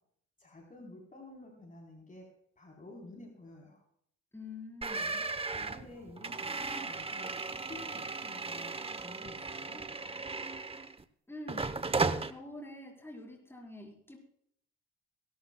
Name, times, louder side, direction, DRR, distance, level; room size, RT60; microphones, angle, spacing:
voice 1, 0.4-2.3 2.6-3.8 5.5-8.8 9.0-9.9, left 2 dB, 25° left, 0 dB, 4.1 m, -51 dB
voice 2, 4.3-5.3 11.3-11.8 12.3-14.2, left 2 dB, 10° left, 0 dB, 4.7 m, -46 dB
sound 1, 4.8-11.0 11.5-12.3, right 3 dB, 20° right, 0.9 m, -36 dB
23.0 x 13.0 x 2.3 m, 0.68 s
cardioid pair, 90°, 30 cm